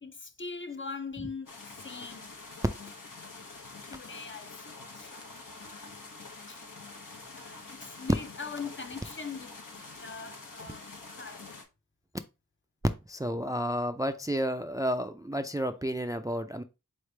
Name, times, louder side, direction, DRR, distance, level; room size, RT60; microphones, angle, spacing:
voice 1, 0.0-1.5 1.8-2.4 3.9-5.4 6.5-6.6 7.3-9.6 10.0-11.4, left 5 dB, 40° left, 0.5 m, -42 dB
sound 1, 1.5-11.6, left 3 dB, 80° left, 0.9 m, -46 dB
voice 2, 13.1-16.6, equal, 10° right, 0.3 m, -31 dB
4.0 x 3.2 x 3.2 m
wide cardioid pair, 45°, 32 cm